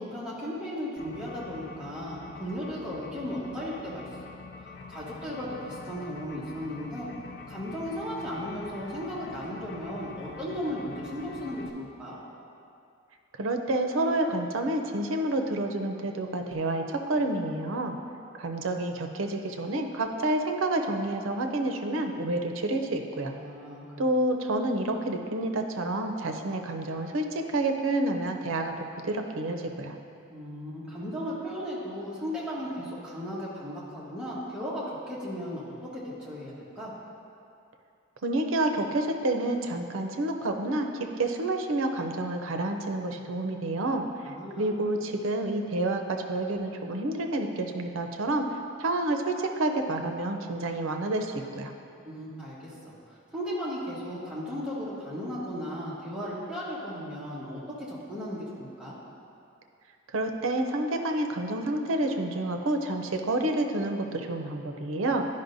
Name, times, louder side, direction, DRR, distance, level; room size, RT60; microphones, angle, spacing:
voice 1, 0.0-7.1 7.5-12.2 23.3-23.9 30.3-36.9 44.2-44.8 52.0-52.9 53.3-57.6 57.9-59.0, equal, 5° right, -8 dB, 1.2 m, -36 dB
sound 1, 1.0-11.7, left 4 dB, 50° left, 0.4 m, -45 dB
voice 2, 13.4-18.0 18.4-23.3 24.0-29.9 38.2-40.9 41.2-48.5 48.8-51.7 60.1-65.2, right 2 dB, 85° right, 5 dB, 0.6 m, -29 dB
10.5 x 5.3 x 2.6 m, 2.6 s
head